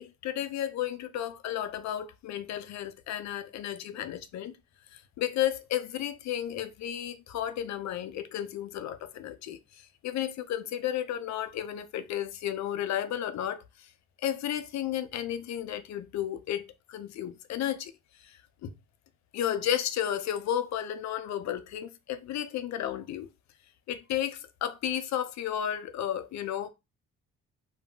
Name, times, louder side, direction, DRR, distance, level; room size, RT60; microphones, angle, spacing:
voice 1, 0.0-4.5 4.9-13.9 14.2-17.9 18.2-18.7 19.3-23.3 23.9-26.7, left 11 dB, 65° left, 0.5 m, -33 dB
2.2 x 2.1 x 3.7 m
cardioid pair, 90°, 30 cm